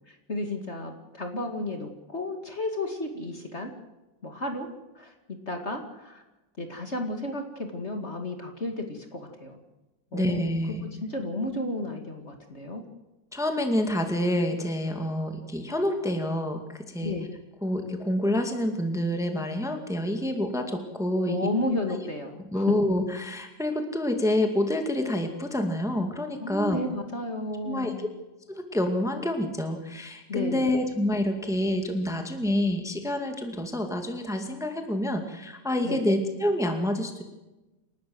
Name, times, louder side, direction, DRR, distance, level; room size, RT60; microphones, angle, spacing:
voice 1, 0.3-3.7 4.2-4.7 5.0-5.1 5.5-6.2 6.6-9.6 10.1-10.4 11.0-12.8 17.0-17.3 21.3-22.6 26.4-28.1 30.3-30.7 35.8-36.0, left 2 dB, 35° left, 4 dB, 2.4 m, -32 dB
voice 2, 10.1-10.9 13.3-16.6 16.9-17.1 17.6-21.5 21.9-22.0 22.5-26.8 27.6-28.1 28.5-37.2, left 1 dB, ahead, 5 dB, 2.1 m, -27 dB
28.5 x 12.5 x 7.8 m, 1.0 s
omnidirectional pair, 2.0 m